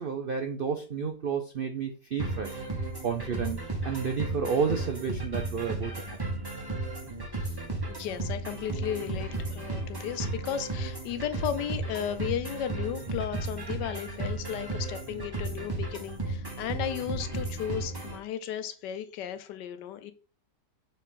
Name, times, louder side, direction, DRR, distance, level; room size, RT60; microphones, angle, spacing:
voice 1, 0.0-2.6 3.0-3.6 3.8-6.2, right 6 dB, 70° right, 5 dB, 0.5 m, -31 dB
sound 1, 2.2-18.2, right 2 dB, 15° right, 1.1 m, -34 dB
voice 2, 7.9-20.1, left 10 dB, 85° left, 11 dB, 1.3 m, -35 dB
6.3 x 4.1 x 3.8 m, 0.34 s
omnidirectional pair, 1.8 m